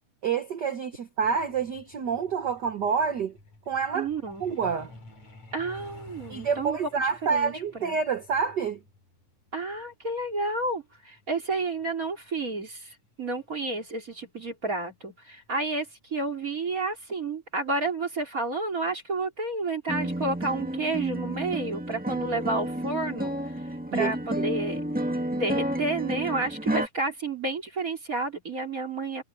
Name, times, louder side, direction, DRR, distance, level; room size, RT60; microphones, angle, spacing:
voice 1, 0.2-3.3 3.7-4.1 4.4-4.9 6.3-8.8 23.9-24.4, right 6 dB, 60° right, 1.1 m, -28 dB
Truck, 1.2-13.5 14.7-14.9 15.3-15.5 15.9-16.1 16.5-16.6 17.0-17.1, left 2 dB, 65° left, 6.2 m, -52 dB
voice 2, 3.9-4.4 5.5-6.8 7.3-8.0 9.5-23.6 23.9-24.8 25.3-29.2, right 3 dB, 25° right, 3.5 m, -31 dB
sound 1, 19.9-26.9, right 1 dB, 5° right, 0.9 m, -31 dB
omnidirectional pair, 3.4 m